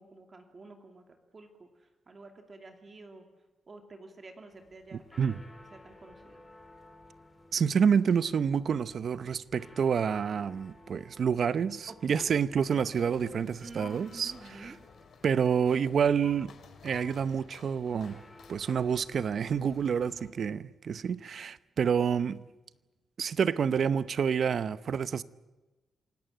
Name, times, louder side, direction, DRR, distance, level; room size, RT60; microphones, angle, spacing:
voice 1, 0.0-3.3 3.7-5.2 5.7-6.4 11.9-12.4 13.6-14.8, right 3 dB, 35° right, 2.7 m, -50 dB
sound 1, 4.5-20.3, left 2 dB, 20° left, 3.2 m, -57 dB
voice 2, 4.9-5.4 7.5-14.3 14.6-14.7 15.2-16.5 16.8-18.2 18.5-22.4 23.2-25.2, right 7 dB, 60° right, 0.8 m, -28 dB
sound 2, 12.6-19.9, left 6 dB, 70° left, 2.8 m, -53 dB
27.0 x 17.5 x 9.1 m
cardioid pair, 110°, 0 cm